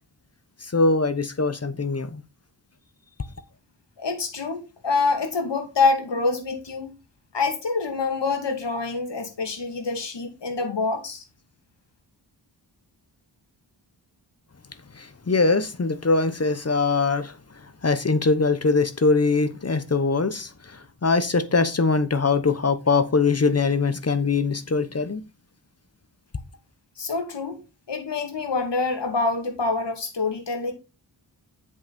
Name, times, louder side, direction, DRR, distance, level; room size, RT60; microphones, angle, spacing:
voice 1, 0.6-2.2 14.9-25.2, left 4 dB, 35° left, 0.9 m, -22 dB
voice 2, 4.0-6.9 7.3-11.2 27.0-27.6 27.9-30.7, left 4 dB, 70° left, 2.7 m, -26 dB
7.9 x 6.2 x 4.3 m
wide cardioid pair, 80°, 43 cm